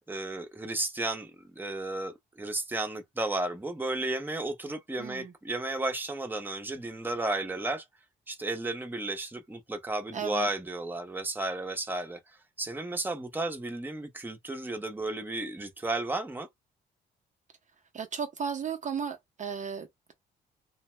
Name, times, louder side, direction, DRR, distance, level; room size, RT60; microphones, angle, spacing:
voice 1, 0.1-1.3 1.6-7.8 8.3-12.2 12.6-16.5, right 2 dB, 10° right, 0.8 m, -33 dB
voice 2, 5.0-5.3 10.1-10.5 17.9-20.1, right 7 dB, 45° right, 0.6 m, -35 dB
2.6 x 2.1 x 3.2 m
cardioid pair, 80°, 18 cm